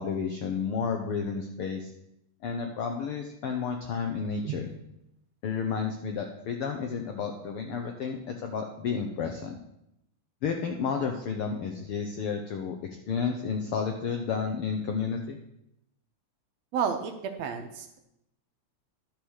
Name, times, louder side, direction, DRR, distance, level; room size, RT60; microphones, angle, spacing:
voice 1, 0.0-1.9 2.4-4.7 5.4-9.6 10.4-12.8 13.1-15.4, left 6 dB, 75° left, 4 dB, 1.2 m, -31 dB
voice 2, 16.7-18.0, right 6 dB, 70° right, 6 dB, 1.7 m, -31 dB
12.0 x 4.9 x 6.3 m, 0.83 s
omnidirectional pair, 3.4 m